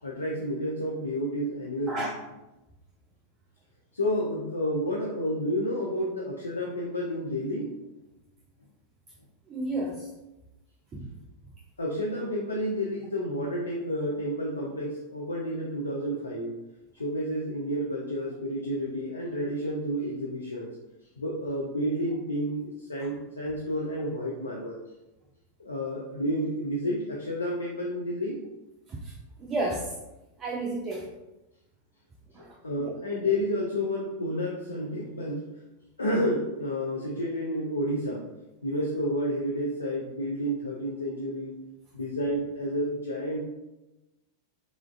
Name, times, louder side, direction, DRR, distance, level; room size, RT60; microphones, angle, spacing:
voice 1, 0.0-2.1 3.9-7.8 11.8-16.5 16.9-20.7 21.2-24.8 25.6-28.4 32.4-35.5 36.0-38.3 38.6-41.5 41.9-43.5, equal, 75° left, -2 dB, 0.3 m, -30 dB
voice 2, 9.5-10.1 10.9-11.1 28.9-29.1 29.4-29.9 30.4-31.1 32.3-32.9, right 2 dB, 25° right, -2 dB, 0.3 m, -32 dB
3.0 x 2.3 x 2.3 m, 1.0 s
figure-of-eight pair, 90°, 0 cm